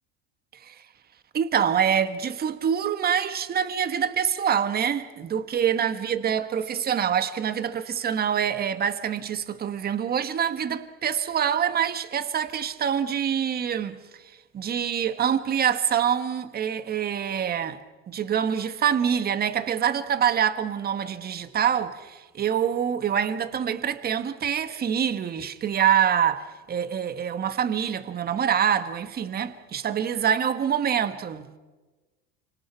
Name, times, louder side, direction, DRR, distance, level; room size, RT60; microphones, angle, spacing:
voice 1, 1.3-14.0 14.5-17.8 18.1-31.5, right 8 dB, 25° right, 1.4 m, -25 dB
29.5 x 25.0 x 5.8 m
cardioid pair, 145°, 34 cm